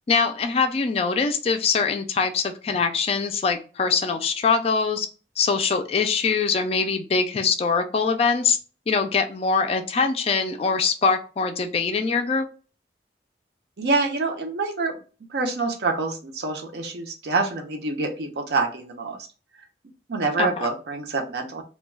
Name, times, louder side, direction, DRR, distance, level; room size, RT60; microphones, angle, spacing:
voice 1, 0.1-5.1 5.4-8.6 8.9-12.5 20.4-20.7, left 5 dB, 35° left, 6 dB, 0.3 m, -23 dB
voice 2, 13.8-15.0 15.3-19.2 20.1-21.6, right 3 dB, 70° right, 3 dB, 0.6 m, -26 dB
2.2 x 2.2 x 3.1 m, 0.36 s
head